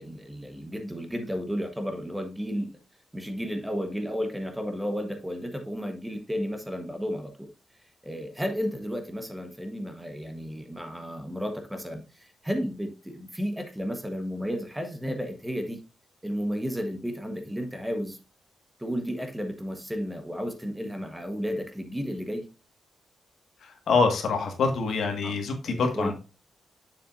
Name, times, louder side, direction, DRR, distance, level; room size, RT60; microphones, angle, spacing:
voice 1, 0.0-2.8 3.1-7.5 8.0-15.8 16.2-18.2 18.8-22.5 25.2-25.4 25.6-26.1, equal, 5° right, 6 dB, 1.2 m, -33 dB
voice 2, 23.6-26.1, left 4 dB, 75° left, 4 dB, 1.7 m, -25 dB
6.9 x 6.8 x 2.6 m, 0.32 s
cardioid pair, 110°, 0 cm